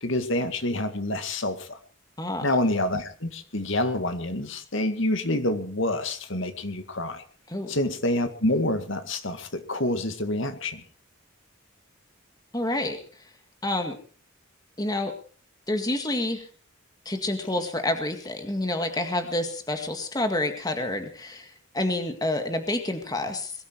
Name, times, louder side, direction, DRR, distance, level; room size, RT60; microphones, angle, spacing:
voice 1, 0.0-1.8 2.4-7.2 7.7-10.8, left 1 dB, 65° left, 9 dB, 2.1 m, -27 dB
voice 2, 12.5-13.0 13.6-14.0 14.8-15.1 15.7-16.5 17.1-23.5, left 1 dB, 20° left, 6 dB, 1.9 m, -28 dB
22.0 x 13.5 x 4.6 m, 0.40 s
head